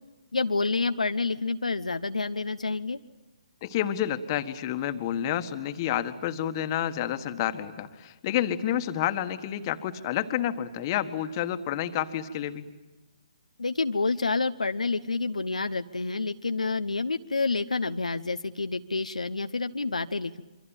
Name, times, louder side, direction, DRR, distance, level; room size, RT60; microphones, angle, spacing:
voice 1, 0.3-3.0 13.6-20.4, left 3 dB, 85° left, 9 dB, 0.8 m, -28 dB
voice 2, 3.6-12.6, left 11 dB, 35° left, 9 dB, 1.6 m, -29 dB
27.5 x 24.0 x 9.0 m, 1.1 s
figure-of-eight pair, 140°, 4 cm